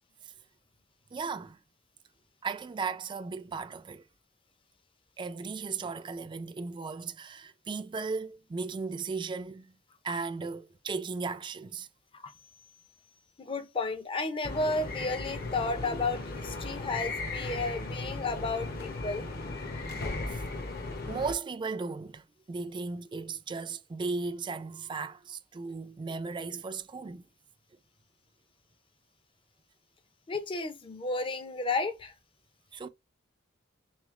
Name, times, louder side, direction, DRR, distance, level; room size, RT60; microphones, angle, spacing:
voice 1, 1.1-1.6 2.4-4.0 5.2-9.7 10.0-11.9 20.3-20.4 21.1-27.2 32.7-32.9, right 4 dB, 25° right, 0.3 m, -36 dB
voice 2, 13.4-19.3 30.3-32.1, left 3 dB, 25° left, 0.5 m, -33 dB
sound 1, 14.4-21.3, left 3 dB, 55° left, 0.8 m, -36 dB
3.4 x 3.2 x 3.6 m
head